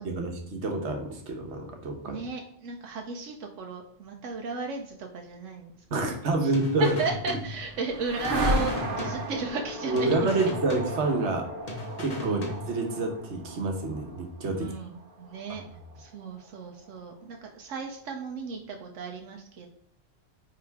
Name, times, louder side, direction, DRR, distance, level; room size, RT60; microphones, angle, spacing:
voice 1, 0.0-2.2 5.9-6.9 9.9-11.5 12.0-12.4 12.7-14.7, right 2 dB, 70° right, 3 dB, 1.4 m, -28 dB
voice 2, 2.0-6.5 6.8-10.4 12.2-12.5 14.5-15.6 16.0-19.7, right 4 dB, 90° right, 2 dB, 1.1 m, -35 dB
sound 1, 6.5-8.0 8.2-9.7 10.0-11.4 11.7-13.0, left 2 dB, 35° left, 1.1 m, -38 dB
sound 2, 7.1-16.9, right 1 dB, 50° right, 1.2 m, -35 dB
9.5 x 3.6 x 3.5 m, 0.68 s
omnidirectional pair, 1.2 m